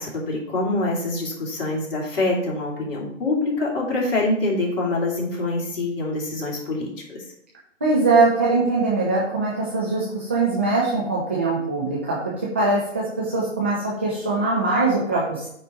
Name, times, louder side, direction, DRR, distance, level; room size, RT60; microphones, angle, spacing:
voice 1, 0.0-7.2, left 2 dB, 45° left, -3 dB, 2.8 m, -25 dB
voice 2, 7.8-15.4, right 3 dB, 10° right, -6 dB, 0.4 m, -22 dB
9.1 x 4.1 x 5.0 m, 0.73 s
figure-of-eight pair, 140°, 38 cm